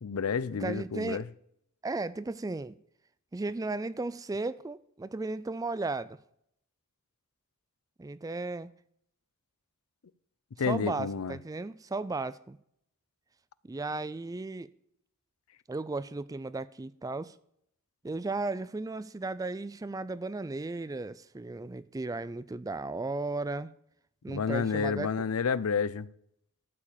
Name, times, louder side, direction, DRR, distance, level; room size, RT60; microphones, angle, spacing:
voice 1, 0.0-1.3 10.6-11.4 24.3-26.1, left 6 dB, 75° left, 0.5 m, -30 dB
voice 2, 0.6-1.2 1.8-2.8 3.3-6.2 8.0-8.7 10.7-12.6 13.6-14.7 15.7-17.3 18.0-23.7 24.2-25.1, right 3 dB, 15° right, 0.3 m, -35 dB
13.0 x 5.0 x 8.6 m
head